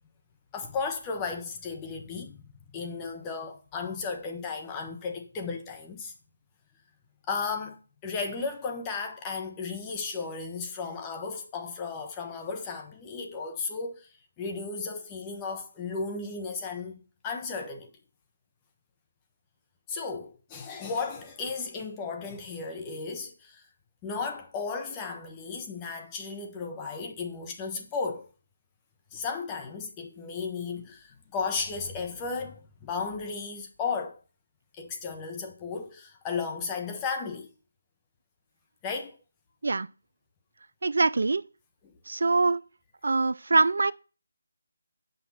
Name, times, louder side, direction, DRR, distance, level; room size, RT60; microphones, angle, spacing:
voice 1, 0.5-6.1 7.3-14.1 14.4-17.9 19.9-23.6 24.0-28.3 29.1-34.2 34.8-37.5 38.8-39.1, left 4 dB, 15° left, 1.4 m, -34 dB
voice 2, 40.8-41.4 42.1-42.6 43.0-43.9, right 3 dB, 65° right, 0.4 m, -23 dB
8.4 x 5.8 x 5.8 m
figure-of-eight pair, 160°, 0 cm